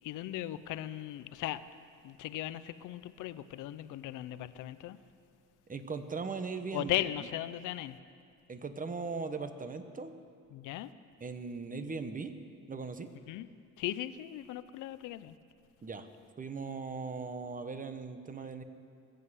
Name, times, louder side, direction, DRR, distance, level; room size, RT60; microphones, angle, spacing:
voice 1, 0.0-1.6 2.0-5.0 6.7-8.0 10.5-10.9 13.2-13.5 13.8-15.4, left 13 dB, 90° left, 0.6 m, -37 dB
voice 2, 5.7-6.9 8.5-10.1 11.2-12.3 12.7-13.1 15.8-16.1 16.4-18.6, right 4 dB, 25° right, 1.1 m, -39 dB
20.0 x 7.7 x 8.2 m
cardioid pair, 90°, 30 cm